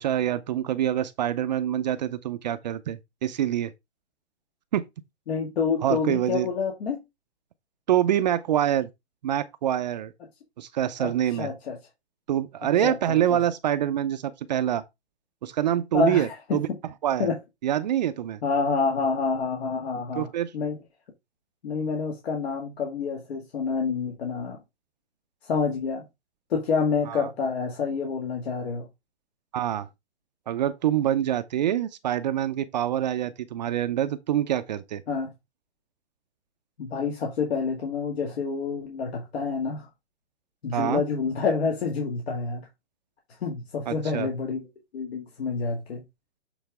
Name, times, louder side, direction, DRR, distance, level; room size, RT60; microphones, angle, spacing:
voice 1, 0.0-3.7 4.7-4.8 5.8-6.5 7.9-8.9 9.2-10.1 10.6-11.5 12.3-14.8 15.4-16.7 17.0-17.3 17.6-18.4 20.2-20.5 27.1-27.3 29.5-29.9 30.5-35.0 40.7-41.0 43.9-44.3, right 11 dB, 40° right, 0.5 m, -25 dB
voice 2, 5.3-7.0 11.0-11.1 11.4-11.8 12.6-13.4 15.9-16.8 17.2-17.4 18.4-20.8 21.6-24.6 25.4-26.0 26.5-28.9 35.1-35.3 36.8-39.9 40.6-42.7 43.4-44.7 44.9-46.0, left 5 dB, 65° left, 2.0 m, -28 dB
8.1 x 4.0 x 3.5 m
hypercardioid pair, 150°, 34 cm